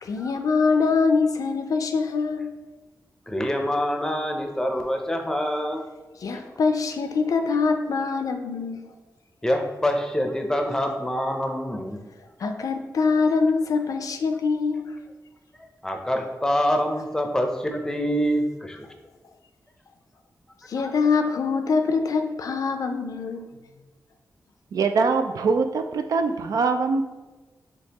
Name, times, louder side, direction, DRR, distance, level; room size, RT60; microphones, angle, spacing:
voice 1, 0.0-2.5 6.2-8.9 12.4-15.0 20.7-23.5, left 4 dB, 75° left, 6 dB, 0.4 m, -24 dB
voice 2, 3.3-5.8 9.4-12.1 15.8-18.9 20.8-20.9, equal, 10° left, 3 dB, 0.6 m, -25 dB
voice 3, 24.7-27.0, right 4 dB, 85° right, 7 dB, 0.4 m, -23 dB
5.2 x 3.2 x 2.9 m, 1.2 s
wide cardioid pair, 115°, 6 cm